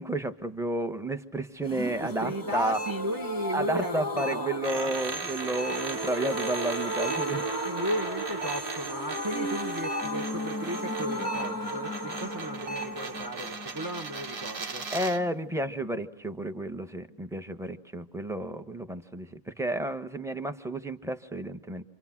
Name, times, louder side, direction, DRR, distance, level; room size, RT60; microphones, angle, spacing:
voice 1, 0.0-2.8 3.5-7.4 14.9-21.8, right 1 dB, ahead, 8 dB, 1.2 m, -32 dB
sound 1, 1.7-15.3 15.5-15.6 15.9-16.0, equal, 15° left, 1.1 m, -35 dB
voice 2, 2.0-4.9 7.6-14.9, right 1 dB, 20° right, 5 dB, 0.8 m, -35 dB
sound 2, 2.7-3.1 4.2-4.6 5.6-6.0 7.0-7.4 8.4-8.8 9.8-10.2 11.2-11.7 12.7-13.0, right 2 dB, 65° right, 1.8 m, -37 dB
sound 3, 4.6-15.3, right 4 dB, 40° right, 1.3 m, -38 dB
29.5 x 26.5 x 6.1 m, 0.67 s
omnidirectional pair, 1.6 m